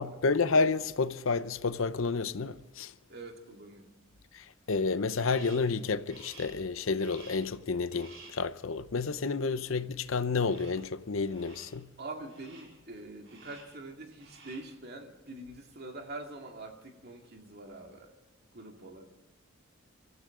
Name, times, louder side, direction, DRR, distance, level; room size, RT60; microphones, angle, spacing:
voice 1, 0.0-2.9 4.3-11.9, left 4 dB, 75° left, 0.7 m, -30 dB
voice 2, 3.1-3.9 8.2-8.3 9.3-9.5 12.0-18.1 18.5-19.1, right 2 dB, 50° right, 2.3 m, -45 dB
Crow, 5.2-5.8 6.1-6.7 7.0-7.6 7.9-8.5 10.4-10.9 11.3-11.8 12.3-12.8 13.2-13.8 14.1-14.8, right 3 dB, 65° right, 4.7 m, -53 dB
24.5 x 15.5 x 3.8 m
head